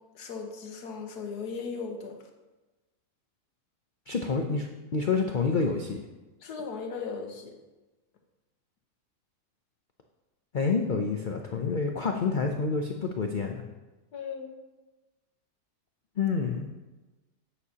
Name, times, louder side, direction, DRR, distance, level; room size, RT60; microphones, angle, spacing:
voice 1, 0.0-2.2 6.4-7.6 14.1-14.6, left 5 dB, 85° left, 3 dB, 1.6 m, -37 dB
voice 2, 4.1-6.0 10.5-13.6 16.2-16.7, left 4 dB, 55° left, 3 dB, 0.5 m, -28 dB
11.0 x 8.9 x 2.9 m, 1.1 s
omnidirectional pair, 1.7 m